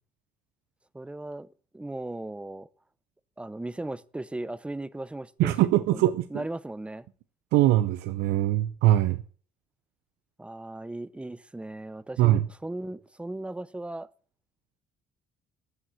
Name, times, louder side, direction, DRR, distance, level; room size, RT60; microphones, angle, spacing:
voice 1, 0.9-1.5 1.7-2.7 3.4-6.0 6.3-7.1 10.4-14.1, right 2 dB, 5° right, 0.5 m, -37 dB
voice 2, 5.4-6.2 7.5-9.2 12.2-12.5, right 14 dB, 85° right, 0.6 m, -22 dB
9.3 x 6.5 x 7.4 m
cardioid pair, 110°, 17 cm